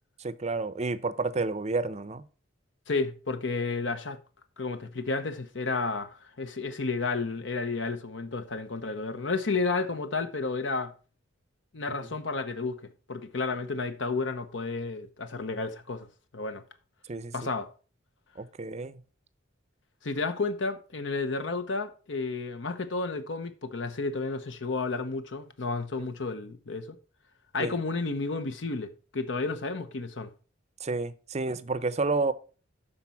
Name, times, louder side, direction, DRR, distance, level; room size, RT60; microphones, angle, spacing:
voice 1, 0.2-2.2 17.1-17.3 18.4-19.0 27.6-27.7 30.8-32.3, right 3 dB, 35° right, 0.6 m, -30 dB
voice 2, 2.9-4.2 4.6-10.9 11.7-12.8 13.1-16.1 16.3-16.6 17.3-17.7 20.0-27.0 27.5-30.3, left 3 dB, 65° left, 0.9 m, -31 dB
12.0 x 4.2 x 5.7 m
head